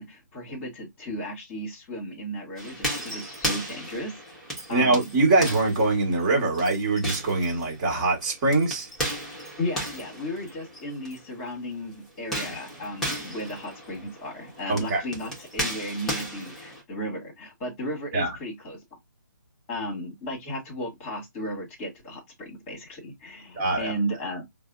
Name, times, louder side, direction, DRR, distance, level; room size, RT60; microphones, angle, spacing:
voice 1, 0.0-4.2 4.7-5.1 9.6-18.8 19.7-24.4, equal, 20° left, 1.4 m, -35 dB
sound 1, 2.6-11.2 12.2-16.8, equal, 5° left, 1.0 m, -35 dB
voice 2, 4.7-8.9 14.7-15.0 18.1-18.3 23.5-23.9, right 3 dB, 20° right, 1.4 m, -23 dB
4.7 x 2.0 x 2.5 m
figure-of-eight pair, 140°, 11 cm